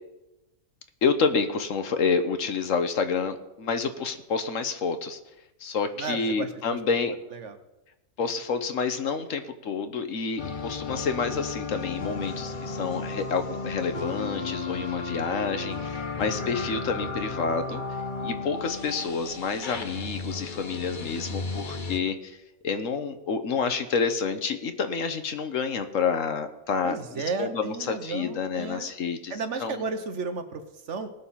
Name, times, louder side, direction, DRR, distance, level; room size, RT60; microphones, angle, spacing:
voice 1, 1.0-5.2 5.6-7.1 8.2-17.8 18.2-22.4 22.6-29.3 29.6-29.8, left 5 dB, 70° left, 9 dB, 1.4 m, -28 dB
voice 2, 6.0-6.8 7.1-7.6 16.1-16.6 26.8-28.9 29.3-31.1, right 4 dB, 60° right, 9 dB, 1.3 m, -34 dB
sound 1, 10.4-22.0, left 3 dB, 40° left, 1.2 m, -34 dB
19.0 x 6.5 x 5.7 m, 0.94 s
omnidirectional pair, 1.4 m